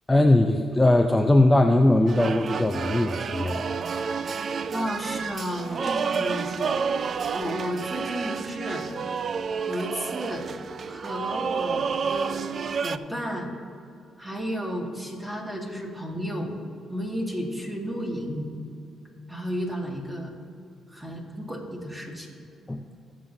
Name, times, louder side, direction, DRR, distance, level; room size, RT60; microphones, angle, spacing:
voice 1, 0.1-3.8 22.7-22.8, left 1 dB, 10° left, 4 dB, 0.5 m, -20 dB
sound 1, 2.1-13.0, right 6 dB, 50° right, 0.3 m, -30 dB
voice 2, 4.7-6.8 7.3-8.8 9.7-10.5 10.9-12.5 12.8-13.5 14.2-16.5 16.9-18.5 19.3-20.3 20.9-22.3, equal, 15° right, 0 dB, 1.9 m, -32 dB
20.0 x 7.4 x 2.7 m, 2.4 s
cardioid pair, 90°, 0 cm